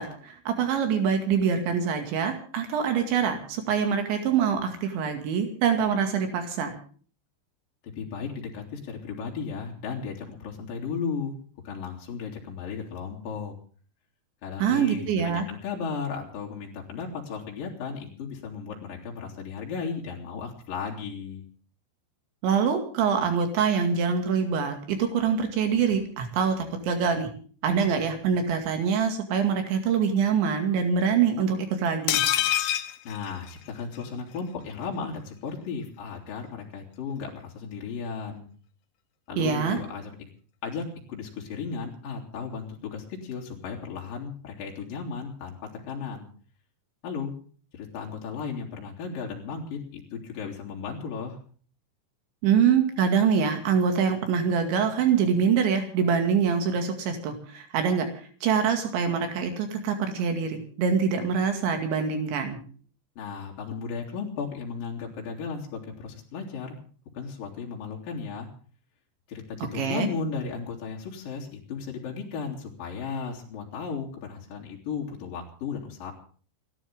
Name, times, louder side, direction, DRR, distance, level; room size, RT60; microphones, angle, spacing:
voice 1, 0.0-6.7 14.6-15.5 22.4-27.3 27.6-32.2 39.4-39.8 52.4-62.6 69.7-70.1, right 6 dB, 80° right, 5 dB, 4.6 m, -25 dB
voice 2, 7.8-11.4 11.6-13.5 14.4-21.4 33.0-38.5 39.3-40.1 40.6-46.3 47.0-47.3 47.7-51.4 63.2-66.8 67.1-68.5 69.3-76.1, left 5 dB, 50° left, -1 dB, 4.6 m, -35 dB
sound 1, 32.1-34.0 34.4-34.5 34.7-34.8, left 12 dB, 70° left, 3.0 m, -26 dB
30.0 x 12.0 x 3.6 m, 0.43 s
omnidirectional pair, 5.2 m